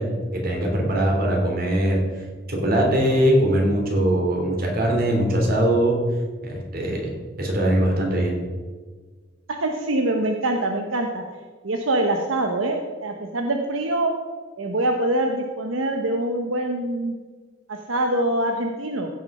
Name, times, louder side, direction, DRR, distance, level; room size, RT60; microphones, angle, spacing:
voice 1, 0.0-2.2 2.5-6.0 6.4-7.1 7.4-8.4, right 1 dB, 50° right, 0 dB, 3.0 m, -21 dB
voice 2, 9.6-11.2 11.6-14.1 14.6-17.1 17.7-19.1, right 1 dB, 80° right, 3 dB, 1.0 m, -24 dB
15.5 x 6.2 x 5.4 m, 1.4 s
head